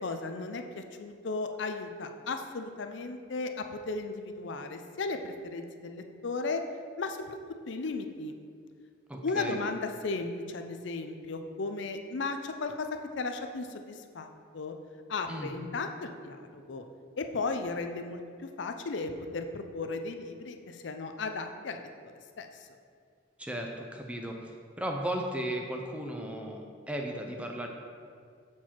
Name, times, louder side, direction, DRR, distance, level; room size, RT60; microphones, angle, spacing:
voice 1, 0.0-6.6 7.0-7.4 7.7-8.4 9.2-12.9 13.2-14.3 14.5-14.8 15.1-16.9 17.2-21.9 22.4-22.5, left 3 dB, 70° left, 6 dB, 0.5 m, -35 dB
voice 2, 9.1-9.6 15.3-15.5 23.4-27.7, right 1 dB, 5° right, 2 dB, 0.5 m, -36 dB
7.5 x 4.5 x 4.4 m, 2.2 s
head